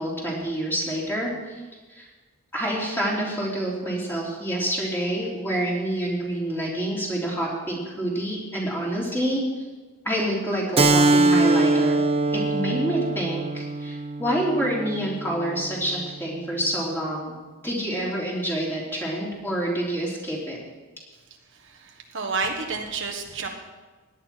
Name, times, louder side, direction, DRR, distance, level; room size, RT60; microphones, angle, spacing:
voice 1, 0.0-1.6 1.9-2.1 2.5-9.6 10.0-12.0 12.3-17.3 17.6-20.6, right 1 dB, 10° left, -4 dB, 3.3 m, -27 dB
Keyboard (musical), 10.8-15.9, right 2 dB, 25° right, 0.6 m, -23 dB
voice 2, 21.5-23.5, right 4 dB, 55° right, 2 dB, 1.4 m, -30 dB
17.5 x 11.0 x 4.6 m, 1.3 s
head